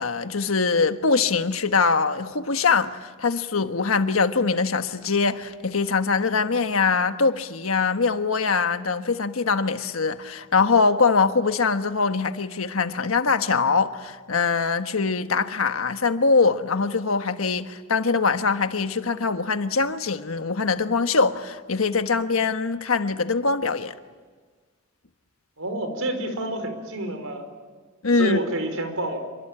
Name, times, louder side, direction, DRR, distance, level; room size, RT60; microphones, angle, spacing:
voice 1, 0.0-23.9 28.0-28.4, left 4 dB, 85° left, 1.3 m, -23 dB
voice 2, 25.6-27.5 28.2-29.2, right 1 dB, 85° right, 4.9 m, -28 dB
27.0 x 24.0 x 8.9 m
head